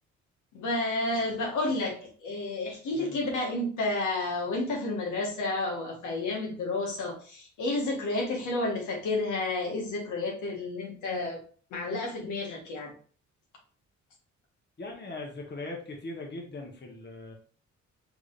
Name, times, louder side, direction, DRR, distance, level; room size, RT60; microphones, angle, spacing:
voice 1, 0.5-11.4 11.7-12.9, left 2 dB, 85° left, -1 dB, 1.6 m, -31 dB
voice 2, 14.8-17.3, left 2 dB, 35° left, 1 dB, 1.4 m, -40 dB
5.1 x 3.5 x 2.6 m, 0.42 s
cardioid pair, 90°, 30 cm